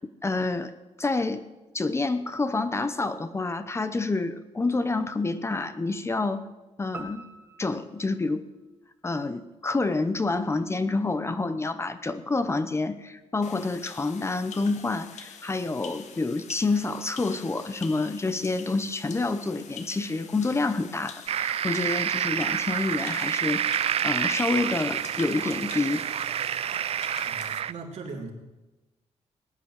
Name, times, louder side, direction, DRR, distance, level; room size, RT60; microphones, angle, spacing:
voice 1, 0.2-0.7 1.0-1.5 1.7-6.5 6.8-7.3 7.6-8.4 9.0-23.7 24.0-26.0, left 3 dB, 20° left, 11 dB, 0.9 m, -28 dB
sound 1, 6.9-9.4, right 2 dB, 20° right, 1.9 m, -46 dB
sound 2, 13.4-27.6, left 7 dB, 80° left, 1.5 m, -46 dB
sound 3, 21.3-27.7, right 9 dB, 55° right, 0.4 m, -28 dB
voice 2, 27.2-28.3, right 3 dB, 75° right, 1 dB, 3.3 m, -39 dB
19.5 x 9.1 x 7.5 m, 1.1 s
cardioid pair, 115°, 12 cm